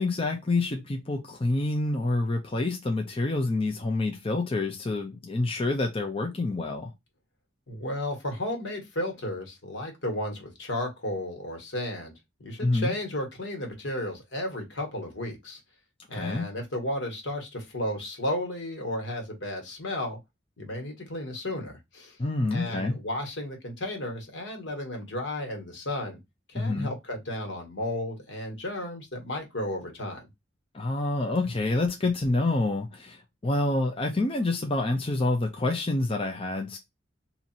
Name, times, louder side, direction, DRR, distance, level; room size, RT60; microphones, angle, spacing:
voice 1, 0.0-6.9 12.6-12.9 16.1-16.4 22.2-23.0 26.5-26.9 30.7-36.8, left 2 dB, 30° left, 0.7 m, -27 dB
voice 2, 7.7-12.1 12.4-15.6 16.1-20.2 20.6-22.2 22.5-26.2 26.5-30.3, left 1 dB, 75° left, 1.6 m, -33 dB
2.9 x 2.8 x 4.1 m
head